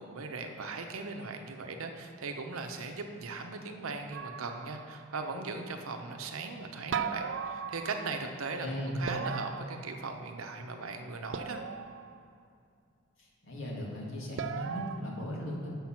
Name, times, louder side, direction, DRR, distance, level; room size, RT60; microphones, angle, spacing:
voice 1, 0.0-11.6, right 3 dB, 90° right, 5 dB, 0.7 m, -39 dB
sound 1, 4.1-5.0 6.9-8.3 9.1-10.4 11.3-12.2 14.4-15.0, right 7 dB, 60° right, 0.3 m, -38 dB
voice 2, 8.6-9.1 13.2-15.7, equal, 70° left, -3 dB, 1.8 m, -37 dB
7.0 x 5.9 x 5.8 m, 2.5 s
head